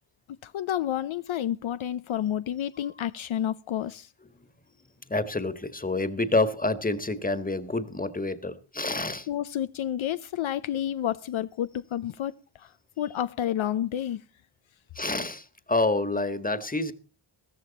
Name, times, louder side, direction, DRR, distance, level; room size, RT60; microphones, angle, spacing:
voice 1, 0.3-4.1 9.3-14.2, left 11 dB, 70° left, 0.7 m, -30 dB
voice 2, 5.1-9.3 14.9-16.9, left 2 dB, 15° left, 1.6 m, -28 dB
14.5 x 14.0 x 4.1 m
cardioid pair, 55°, 50 cm